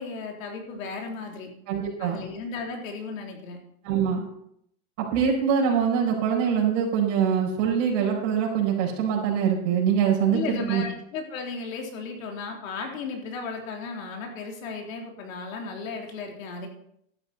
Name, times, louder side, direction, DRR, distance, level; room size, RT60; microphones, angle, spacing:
voice 1, 0.0-1.5 2.0-3.6 10.3-16.7, left 4 dB, 85° left, 1 dB, 3.6 m, -35 dB
voice 2, 1.7-2.2 3.8-4.2 5.0-10.8, right 7 dB, 65° right, -3 dB, 4.9 m, -24 dB
13.0 x 11.0 x 4.3 m, 0.72 s
supercardioid pair, 145°, 39 cm